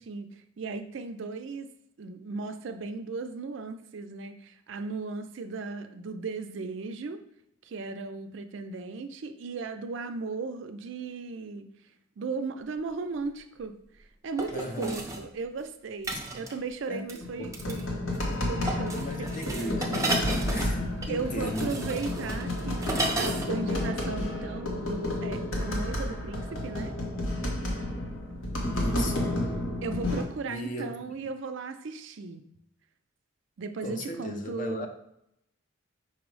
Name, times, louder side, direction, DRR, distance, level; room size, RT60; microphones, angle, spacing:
voice 1, 0.1-1.7 2.0-7.2 7.6-11.7 12.2-18.0 18.5-19.8 21.1-26.9 29.8-32.4 33.6-34.9, right 4 dB, 65° right, 8 dB, 0.4 m, -36 dB
sound 1, 13.0-13.1 14.4-15.2 16.0-16.6 17.1-17.2 17.5-17.9 18.1-18.4 18.7-23.5 23.8-23.9, right 2 dB, 15° right, 0.5 m, -33 dB
voice 2, 14.5-15.0 16.1-16.4 16.9-17.7 18.9-21.7 28.7-29.4 30.5-31.0 33.8-34.9, left 1 dB, 40° left, 4 dB, 0.6 m, -36 dB
sound 2, 17.2-30.2, left 1 dB, 90° left, 1.0 m, -31 dB
5.5 x 2.0 x 4.6 m, 0.78 s
head